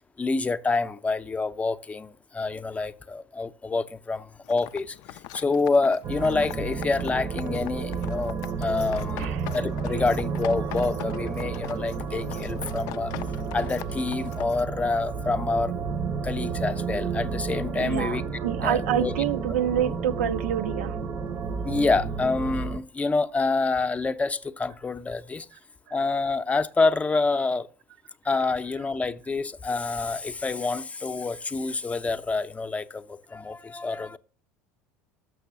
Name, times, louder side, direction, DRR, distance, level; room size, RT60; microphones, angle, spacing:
voice 1, 0.2-13.1 13.5-15.7 16.2-18.2 18.6-19.1 21.6-25.5 25.9-27.7 28.2-34.2, left 3 dB, 20° left, 0.6 m, -27 dB
sound 1, 4.4-14.6, left 15 dB, 60° left, 0.4 m, -42 dB
sound 2, 6.0-22.8, right 5 dB, 35° right, 0.7 m, -31 dB
voice 2, 17.7-21.0 25.9-26.0, right 10 dB, 80° right, 0.4 m, -27 dB
6.6 x 6.3 x 5.9 m
hypercardioid pair, 80°, 7 cm